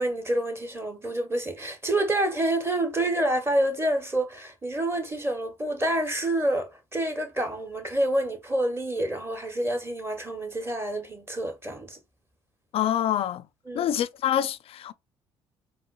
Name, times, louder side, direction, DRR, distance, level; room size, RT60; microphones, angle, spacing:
voice 1, 0.0-12.0 13.7-13.9, right 1 dB, 20° right, 1.0 m, -28 dB
voice 2, 12.7-13.4 13.7-14.9, left 10 dB, 50° left, 0.4 m, -26 dB
4.0 x 2.1 x 2.3 m
hypercardioid pair, 55°, 12 cm